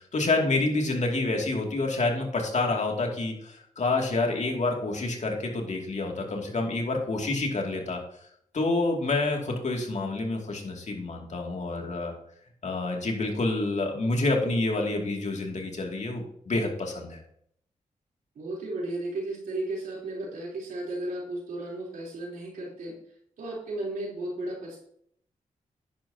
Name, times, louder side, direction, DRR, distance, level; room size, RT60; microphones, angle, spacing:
voice 1, 0.0-8.0 8.5-12.1 12.6-17.2, left 2 dB, 60° left, 1 dB, 2.6 m, -28 dB
voice 2, 18.4-22.9 23.4-24.8, right 2 dB, 90° right, -4 dB, 3.8 m, -34 dB
10.5 x 9.4 x 2.9 m, 0.68 s
cardioid pair, 55°, 14 cm